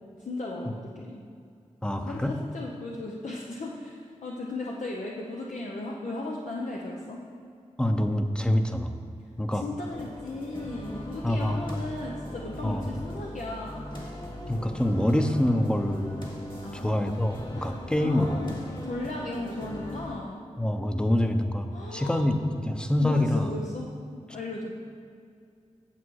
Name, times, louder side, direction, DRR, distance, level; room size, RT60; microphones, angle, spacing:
voice 1, 0.2-1.2 2.0-7.2 9.5-13.9 16.6-17.1 17.5-18.6 18.8-20.5 21.7-22.3 23.0-24.7, left 2 dB, 75° left, -2 dB, 0.8 m, -36 dB
voice 2, 1.8-2.4 7.8-9.0 9.4-9.6 11.2-11.6 12.6-12.9 14.5-16.3 16.7-18.4 20.6-23.5, left 1 dB, 5° left, 6 dB, 0.7 m, -26 dB
sound 1, 9.9-20.1, equal, 40° left, 1.8 m, -40 dB
8.7 x 7.1 x 4.7 m, 2.4 s
cardioid pair, 50°, 13 cm